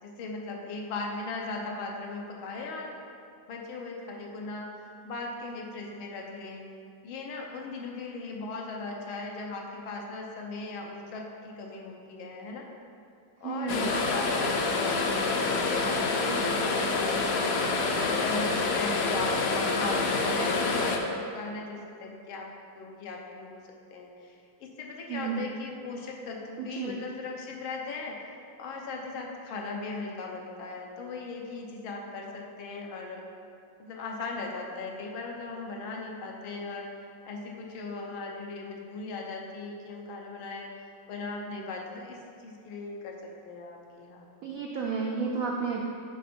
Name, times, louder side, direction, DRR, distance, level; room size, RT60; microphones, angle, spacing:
voice 1, 0.0-3.0 3.5-4.7 5.0-6.6 7.0-12.7 13.4-17.5 17.9-22.5 22.7-23.6 23.9-28.2 28.6-33.2 33.8-36.9 37.2-44.3, left 3 dB, 90° left, 0 dB, 1.7 m, -38 dB
voice 2, 13.4-13.9 16.3-16.4 25.1-25.5 26.6-26.9 44.4-45.8, right 5 dB, 90° right, -1 dB, 0.7 m, -32 dB
sound 1, 13.7-21.0, left 3 dB, 70° left, 0.8 m, -27 dB
9.8 x 3.6 x 4.3 m, 2.5 s
omnidirectional pair, 2.2 m